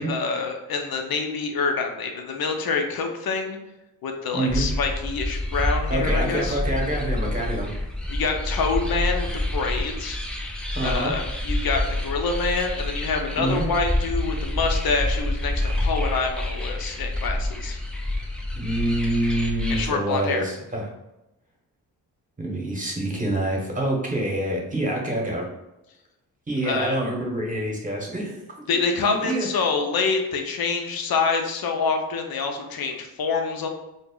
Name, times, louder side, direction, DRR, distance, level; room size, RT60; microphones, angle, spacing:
voice 1, 0.0-3.6 4.0-6.6 8.1-10.2 10.8-17.8 19.7-20.5 26.6-27.0 28.7-33.7, left 4 dB, 50° left, 3 dB, 0.6 m, -26 dB
voice 2, 4.3-4.7 5.9-7.7 10.7-11.1 13.3-13.7 18.5-20.8 22.4-25.5 26.5-28.7 29.2-29.5, right 1 dB, 15° right, -2 dB, 1.0 m, -26 dB
sound 1, 4.5-19.9, left 1 dB, ahead, 0.3 m, -28 dB
2.0 x 2.0 x 3.7 m, 0.94 s
supercardioid pair, 40°, 45 cm